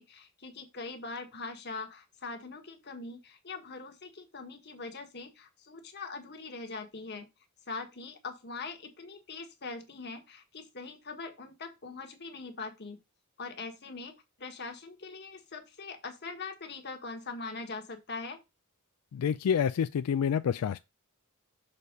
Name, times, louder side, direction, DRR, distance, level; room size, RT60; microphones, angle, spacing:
voice 1, 0.0-7.3 7.7-13.0 13.4-18.4, left 4 dB, 50° left, 1.4 m, -42 dB
voice 2, 19.1-20.8, left 7 dB, 85° left, 0.3 m, -28 dB
6.7 x 4.2 x 5.2 m
head